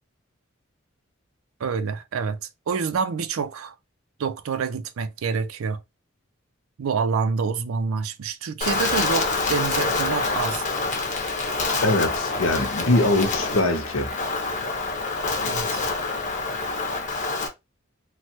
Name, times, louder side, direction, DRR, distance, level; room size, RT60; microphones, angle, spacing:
voice 1, 1.6-3.7 4.2-5.8 6.8-10.6 15.4-15.8, right 5 dB, 90° right, 0.4 m, -27 dB
Wind, 8.6-17.5, left 3 dB, 35° left, 0.7 m, -26 dB
voice 2, 11.8-14.1, left 2 dB, 70° left, 0.7 m, -22 dB
3.1 x 2.1 x 2.8 m
head